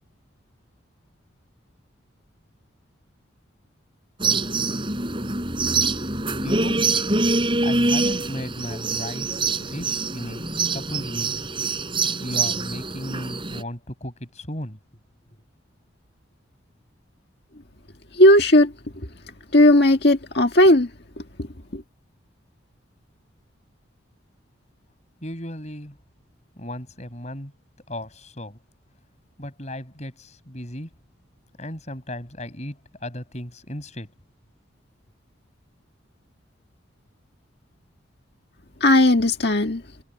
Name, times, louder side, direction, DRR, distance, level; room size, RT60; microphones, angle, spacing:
sound 1, 4.2-13.6, right 3 dB, 25° right, 5.4 m, -25 dB
voice 1, 6.4-6.8 7.6-11.5 12.2-14.8 25.2-26.0 26.6-27.5 27.9-28.6 29.4-30.9 31.6-34.1, left 1 dB, 35° left, 6.7 m, -35 dB
voice 2, 18.2-18.7 19.5-20.9 21.7-21.8 38.8-39.8, left 1 dB, 55° left, 1.9 m, -15 dB
head